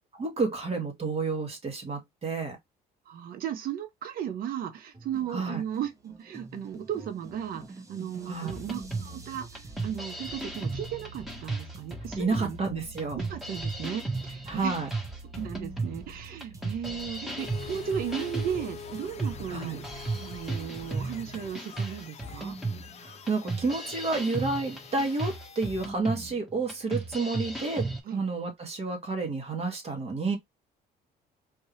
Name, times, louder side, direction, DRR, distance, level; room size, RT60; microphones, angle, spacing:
voice 1, 0.1-2.6 5.3-5.6 8.3-8.5 12.2-13.2 14.5-14.9 19.5-19.8 23.0-30.4, right 3 dB, 35° right, 1.8 m, -30 dB
voice 2, 3.1-12.6 13.1-14.8 15.4-22.6 28.0-28.2, right 9 dB, 60° right, 0.8 m, -36 dB
sound 1, 4.9-21.5, right 3 dB, 20° right, 1.0 m, -47 dB
sound 2, 8.5-28.0, right 3 dB, ahead, 1.4 m, -35 dB
sound 3, 17.4-25.9, left 7 dB, 40° left, 0.7 m, -45 dB
4.4 x 2.8 x 3.2 m
cardioid pair, 110°, 17 cm